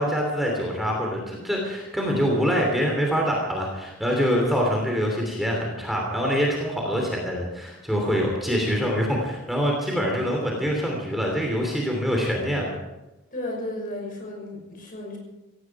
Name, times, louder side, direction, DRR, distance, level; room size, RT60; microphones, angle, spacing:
voice 1, 0.0-12.7, equal, ahead, -1 dB, 3.0 m, -25 dB
voice 2, 13.3-15.2, left 1 dB, 40° left, 0 dB, 6.1 m, -33 dB
17.0 x 17.0 x 4.8 m, 1.0 s
head